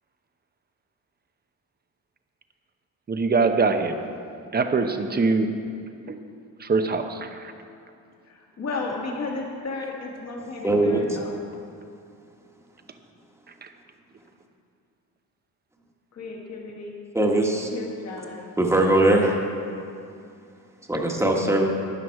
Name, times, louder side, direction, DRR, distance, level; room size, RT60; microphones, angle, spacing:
voice 1, 3.1-4.0 4.5-5.5 6.1-6.2 6.6-7.5 13.6-13.7, right 4 dB, 25° right, 7 dB, 0.8 m, -23 dB
voice 2, 8.3-11.3 16.1-16.9 17.7-18.5, left 3 dB, 45° left, -1 dB, 2.0 m, -34 dB
voice 3, 10.6-11.2 17.1-17.7 18.6-19.4 20.9-21.7, right 1 dB, 10° right, 0 dB, 1.5 m, -20 dB
13.0 x 9.4 x 4.7 m, 2.5 s
cardioid pair, 105°, 35 cm